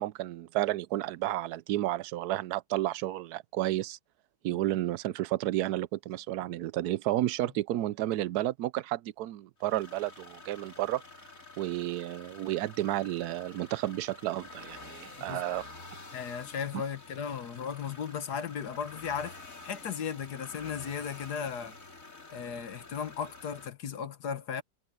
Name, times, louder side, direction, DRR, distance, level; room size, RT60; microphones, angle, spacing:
voice 1, 0.0-4.0 4.4-11.0 11.6-15.6, right 15 dB, 70° right, 1.0 m, -31 dB
sound 1, 9.6-23.7, left 3 dB, 50° left, 3.5 m, -49 dB
voice 2, 16.1-19.4 19.6-21.8 22.3-24.6, left 7 dB, 65° left, 1.6 m, -36 dB
omnidirectional pair, 1.9 m